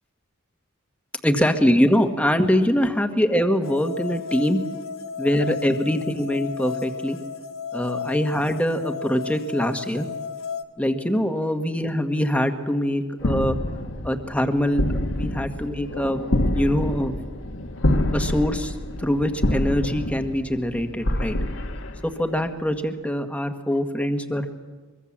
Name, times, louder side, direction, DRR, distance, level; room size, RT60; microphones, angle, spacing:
voice 1, 1.2-4.6 5.2-7.2 7.7-10.1 10.8-13.6 14.0-14.8 15.1-16.2 16.5-17.1 18.1-21.4 22.0-24.5, equal, 5° left, 6 dB, 1.6 m, -23 dB
sound 1, 3.6-10.6, left 6 dB, 85° left, 1.7 m, -34 dB
sound 2, 13.2-22.5, left 1 dB, 70° left, 1.8 m, -27 dB
24.0 x 23.5 x 7.4 m, 1.4 s
head